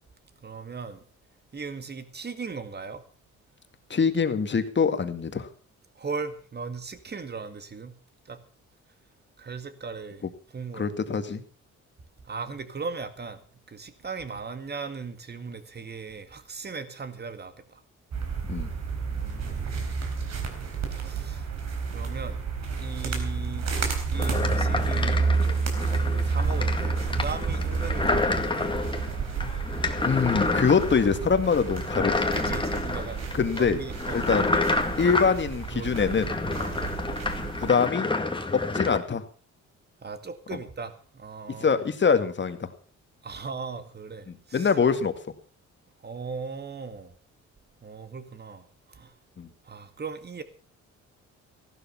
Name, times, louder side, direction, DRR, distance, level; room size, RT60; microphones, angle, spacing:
voice 1, 0.4-1.0 1.5-3.0 6.0-7.9 8.3-8.4 9.4-11.2 12.2-17.8 19.1-19.9 21.0-21.5 21.9-22.4 22.8-23.8 24.1-29.1 32.3-33.2 33.6-34.8 35.1-36.1 36.6-36.8 40.0-41.8 43.2-44.7 46.0-47.1 47.8-49.1 49.6-50.4, right 5 dB, 35° right, 2.1 m, -38 dB
voice 2, 3.9-5.5 10.8-11.4 18.5-18.7 30.0-32.3 33.3-33.8 34.1-34.5 35.0-36.3 37.6-38.1 38.5-39.2 41.6-42.7 44.3-45.1 49.4-49.5, left 6 dB, 40° left, 2.0 m, -24 dB
sound 1, 18.1-37.7, right 5 dB, 60° right, 4.0 m, -30 dB
sound 2, 24.1-39.0, left 3 dB, 15° left, 2.0 m, -29 dB
15.0 x 12.0 x 5.7 m
cardioid pair, 90°, 30 cm